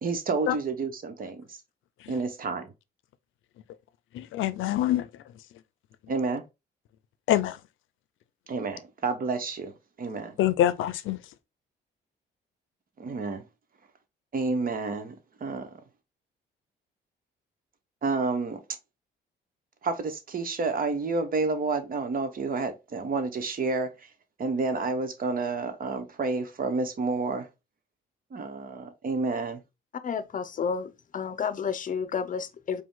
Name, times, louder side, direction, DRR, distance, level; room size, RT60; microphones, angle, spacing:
voice 1, 0.0-1.6 2.1-2.7 6.1-6.4 8.5-9.7 10.0-10.3 13.0-13.4 14.3-15.1 15.4-15.7 18.0-18.6 19.8-23.9 24.4-27.5 28.3-29.6, right 4 dB, 45° right, 1.1 m, -29 dB
voice 2, 4.1-5.1 7.3-7.6 10.4-11.2, left 12 dB, 85° left, 0.5 m, -25 dB
voice 3, 30.0-32.8, left 6 dB, 40° left, 0.7 m, -31 dB
4.9 x 2.3 x 3.8 m
cardioid pair, 90°, 20 cm